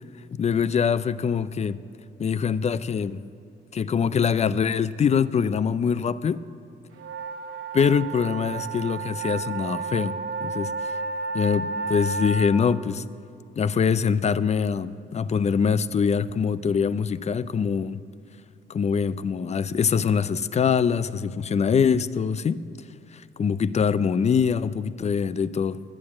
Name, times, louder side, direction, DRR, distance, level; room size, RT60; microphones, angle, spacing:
voice 1, 0.4-1.8 2.2-3.2 3.7-6.4 7.7-10.9 11.3-13.0 13.6-18.0 18.7-22.7 23.4-25.8, left 6 dB, 35° left, 0.5 m, -24 dB
sound 1, 6.9-12.6, right 4 dB, 80° right, 1.0 m, -31 dB
11.0 x 9.5 x 8.7 m
cardioid pair, 90°, 20 cm